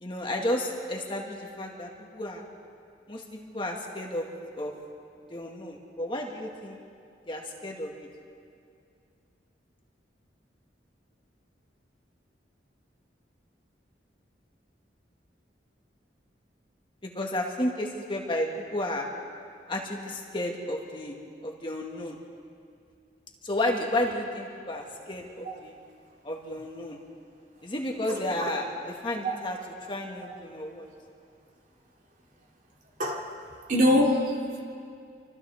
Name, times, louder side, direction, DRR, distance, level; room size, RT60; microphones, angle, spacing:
voice 1, 0.0-2.4 3.1-4.3 4.6-4.7 5.3-6.8 7.3-8.1 17.0-19.1 19.7-22.2 23.4-25.7 26.2-27.0 27.6-29.6 29.9-30.9, left 1 dB, 30° left, 0 dB, 2.0 m, -32 dB
voice 2, 33.7-34.6, left 1 dB, 50° right, -1 dB, 2.9 m, -23 dB
28.5 x 25.0 x 3.6 m, 2.4 s
head